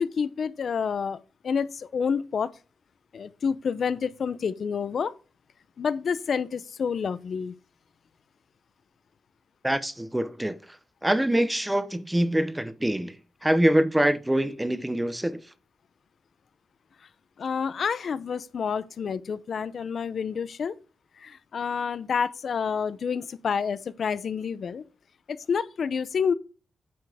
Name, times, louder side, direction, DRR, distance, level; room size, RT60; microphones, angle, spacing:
voice 1, 0.0-2.5 3.1-5.1 5.8-7.5 17.4-20.8 21.2-24.8 25.3-26.3, left 6 dB, 55° left, 0.6 m, -29 dB
voice 2, 9.6-10.6 11.0-13.2 13.4-15.4, right 1 dB, 10° right, 0.8 m, -24 dB
9.4 x 7.0 x 3.5 m
wide cardioid pair, 130°, 0 cm